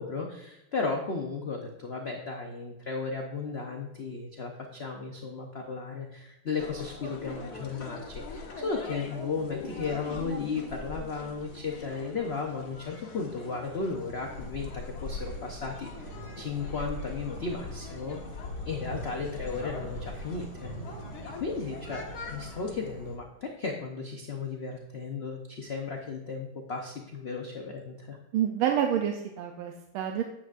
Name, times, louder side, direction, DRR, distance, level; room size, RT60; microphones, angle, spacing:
voice 1, 0.0-18.2 18.6-20.7 21.2-22.0 22.3-28.2, left 4 dB, 75° left, 1 dB, 0.5 m, -35 dB
sound 1, 6.6-22.7, left 3 dB, 55° left, 1.4 m, -42 dB
Insect / Frog, 13.9-23.1, right 1 dB, 55° right, 2.0 m, -48 dB
sound 2, 14.0-23.2, equal, 40° right, 1.8 m, -46 dB
voice 2, 28.3-30.2, right 9 dB, 90° right, 3 dB, 1.5 m, -28 dB
9.7 x 7.9 x 2.5 m, 0.90 s
omnidirectional pair, 2.3 m